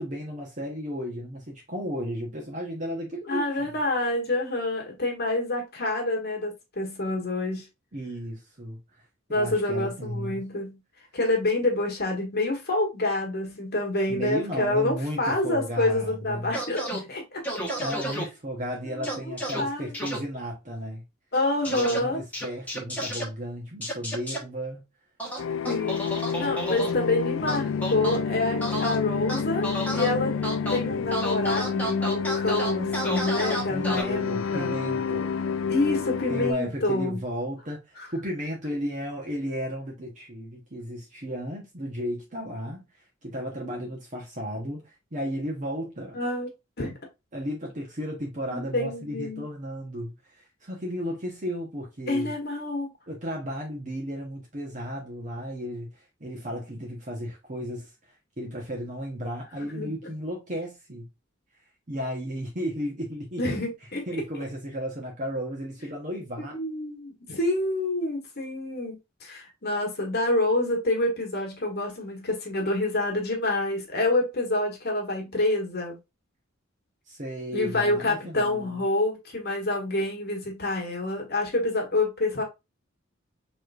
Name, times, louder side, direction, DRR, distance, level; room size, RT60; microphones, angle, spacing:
voice 1, 0.0-3.7 7.9-8.8 9.3-10.4 14.1-16.5 17.8-21.0 21.7-24.8 26.4-26.6 33.7-35.4 36.3-42.8 43.2-46.2 47.3-52.3 53.1-57.9 58.4-61.1 61.9-63.4 64.1-66.6 77.1-78.8, equal, 40° right, 1.0 m, -34 dB
voice 2, 3.3-7.7 9.3-10.8 11.1-17.4 18.1-18.2 18.9-20.0 21.3-22.2 25.6-30.3 30.7-34.7 35.7-37.2 46.1-46.5 46.8-46.9 48.5-49.4 52.1-52.9 59.6-59.9 63.4-64.0 66.5-76.0 77.5-82.4, left 2 dB, 50° left, 1.4 m, -27 dB
sound 1, 16.5-17.0 17.4-18.2 19.0-19.6 19.9-20.2 21.6-22.0 22.3-23.2 23.8-24.4 25.2-26.9 27.5-28.2 28.6-29.0 29.3-30.1 30.4-30.8 31.1-34.0, right 1 dB, 10° left, 1.2 m, -31 dB
sound 2, 25.4-36.5, left 6 dB, 80° left, 0.4 m, -29 dB
4.8 x 3.2 x 2.5 m
head